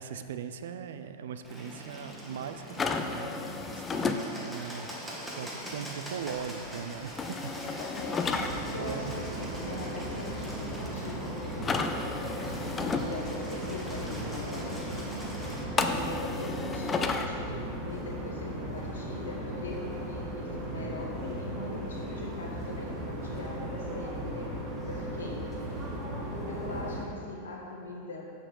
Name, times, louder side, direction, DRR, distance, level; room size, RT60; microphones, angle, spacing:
voice 1, 0.0-7.5 8.8-9.1 25.6-26.0, right 7 dB, 60° right, 10 dB, 0.4 m, -40 dB
Bird, 1.4-15.6, equal, 5° right, 1.4 m, -42 dB
sound 1, 2.8-4.2 7.2-8.5 11.6-13.0 15.8-17.3, left 4 dB, 20° left, 0.5 m, -31 dB
voice 2, 7.6-12.4 12.8-24.6 24.8-25.8 26.2-28.5, left 2 dB, 65° left, -2 dB, 1.4 m, -42 dB
sound 2, 8.2-27.0, right 1 dB, 20° right, 2.0 m, -37 dB
7.7 x 6.3 x 4.6 m, 2.5 s
figure-of-eight pair, 90°, 0 cm